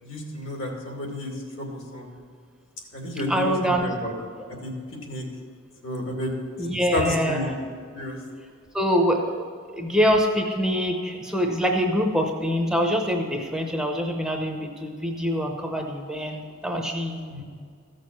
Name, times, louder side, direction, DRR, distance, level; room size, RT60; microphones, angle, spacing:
voice 1, 0.0-2.1 2.9-4.1 4.6-4.7 5.1-5.3 5.8-6.3 6.9-7.5 7.9-8.2 17.3-17.4, left 1 dB, 70° left, 0 dB, 2.4 m, -31 dB
voice 2, 3.3-3.9 6.6-7.6 8.7-9.4 9.7-17.2, equal, 5° right, 2 dB, 0.8 m, -24 dB
14.5 x 6.5 x 6.1 m, 2.1 s
head